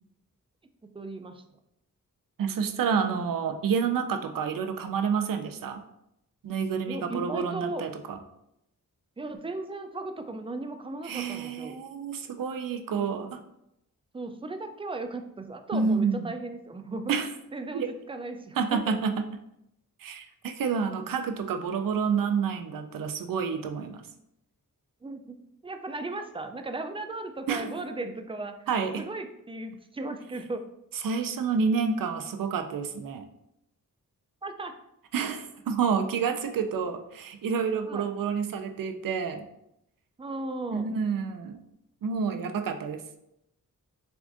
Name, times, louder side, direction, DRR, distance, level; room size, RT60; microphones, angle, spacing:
voice 1, 0.8-1.4 6.9-7.8 9.2-11.7 12.9-13.4 14.1-17.2 17.5-19.0 25.0-28.7 29.0-30.7 34.4-34.7 37.9-38.1 40.2-40.9, right 2 dB, 15° right, 7 dB, 0.3 m, -36 dB
voice 2, 2.4-5.8 6.4-8.2 11.0-13.3 15.7-16.3 17.1-17.3 17.7-17.9 18.6-19.1 20.0-24.0 27.5-27.7 28.7-29.0 31.0-33.3 35.1-39.4 40.7-41.6 42.0-43.0, right 6 dB, 80° right, 7 dB, 0.5 m, -29 dB
6.9 x 2.5 x 2.5 m, 0.82 s
wide cardioid pair, 110°, 33 cm